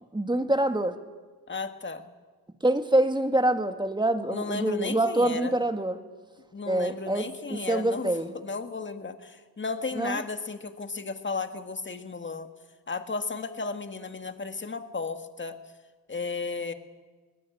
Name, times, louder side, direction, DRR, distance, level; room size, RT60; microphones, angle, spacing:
voice 1, 0.1-0.9 2.6-6.0 6.7-8.3 10.0-10.2, right 1 dB, 10° right, 7 dB, 2.0 m, -25 dB
voice 2, 1.5-2.1 4.3-5.5 6.5-12.5 12.9-15.6 16.1-16.7, left 4 dB, 25° left, 8 dB, 1.9 m, -34 dB
22.0 x 19.0 x 8.6 m, 1.4 s
cardioid pair, 80°, 43 cm